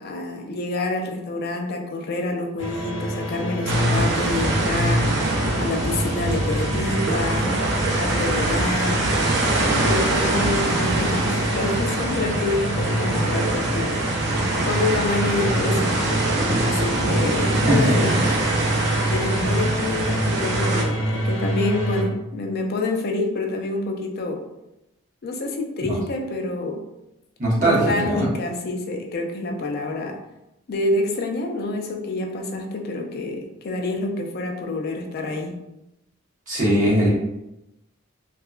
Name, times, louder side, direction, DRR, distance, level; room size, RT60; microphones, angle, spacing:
voice 1, 0.0-5.2 5.6-7.5 8.0-9.1 9.8-14.0 14.6-16.0 16.6-18.3 19.0-24.4 25.2-26.8 27.6-30.2 30.7-35.5, left 2 dB, 50° left, 2 dB, 0.4 m, -27 dB
sound 1, 2.6-22.0, right 1 dB, 80° left, 0.7 m, -27 dB
sound 2, 3.7-20.8, right 1 dB, 60° right, 0.5 m, -24 dB
voice 2, 27.4-28.3 36.5-37.1, right 1 dB, 40° right, -6 dB, 1.0 m, -20 dB
2.8 x 2.3 x 2.3 m, 0.91 s
head